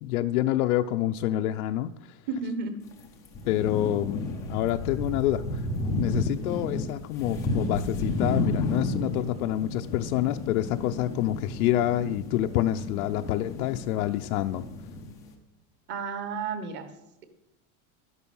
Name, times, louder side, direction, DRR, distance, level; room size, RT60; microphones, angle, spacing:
voice 1, 0.0-2.2 3.5-5.7 6.0-14.6, left 13 dB, 80° left, 6 dB, 0.6 m, -27 dB
voice 2, 2.3-2.7 15.9-16.9, right 5 dB, 25° right, 9 dB, 1.1 m, -32 dB
sound 1, 2.9-3.0 3.2-15.3, left 2 dB, 10° left, 0.3 m, -32 dB
12.0 x 10.5 x 5.5 m, 0.91 s
supercardioid pair, 180°, 43 cm